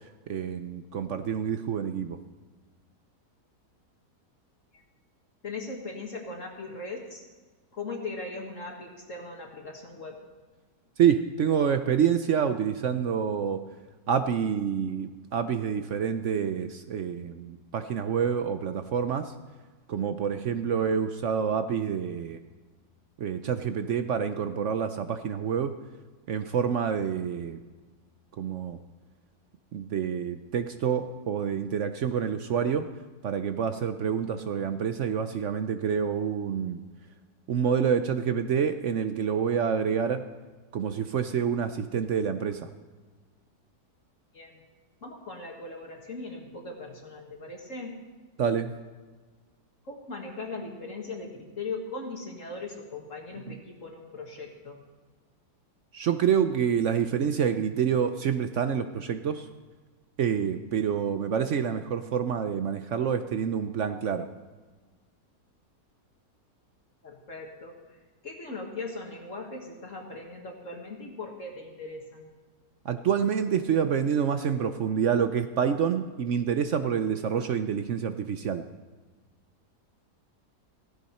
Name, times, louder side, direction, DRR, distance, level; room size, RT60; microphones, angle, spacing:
voice 1, 0.3-2.2 11.0-13.6 14.1-19.3 19.9-22.4 23.2-25.7 26.3-27.6 28.4-28.8 29.7-32.9 33.2-36.8 37.5-40.3 40.7-42.7 48.4-48.7 53.5-53.6 55.9-59.5 60.2-64.3 72.8-78.6, right 7 dB, 60° right, 9 dB, 0.8 m, -27 dB
voice 2, 5.4-7.2 7.7-10.2 44.3-44.6 45.0-48.0 49.9-54.8 67.0-67.7 68.2-72.3, left 3 dB, 50° left, 0 dB, 2.0 m, -39 dB
16.0 x 15.0 x 4.3 m, 1.3 s
omnidirectional pair, 1.7 m